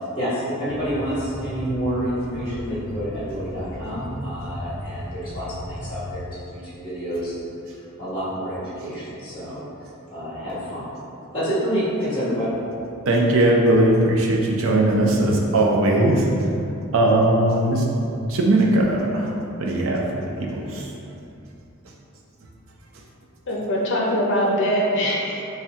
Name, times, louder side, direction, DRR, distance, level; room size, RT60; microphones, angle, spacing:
voice 1, 0.2-7.5 8.0-9.6 10.1-10.9 11.3-12.5, equal, 25° left, -10 dB, 1.2 m, -28 dB
sound 1, 0.7-6.1, equal, 15° right, 0.3 m, -35 dB
voice 2, 13.1-16.3 16.9-17.9 18.3-19.3 19.6-20.9, right 1 dB, 70° right, -1 dB, 0.5 m, -19 dB
voice 3, 23.5-25.4, equal, 55° left, -3 dB, 0.7 m, -22 dB
4.2 x 2.2 x 3.5 m, 2.7 s
head